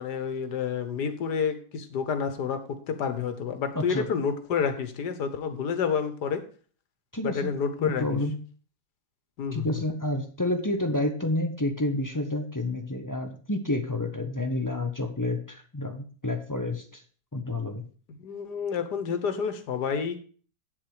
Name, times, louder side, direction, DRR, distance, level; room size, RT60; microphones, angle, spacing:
voice 1, 0.0-6.4 7.2-8.2 9.4-9.8 18.1-20.2, left 6 dB, 85° left, 9 dB, 1.7 m, -29 dB
voice 2, 3.7-4.1 7.1-7.5 7.8-8.4 9.5-17.0 17.3-17.8, left 2 dB, 15° left, 5 dB, 0.7 m, -29 dB
8.7 x 7.5 x 4.8 m, 0.41 s
omnidirectional pair, 1.7 m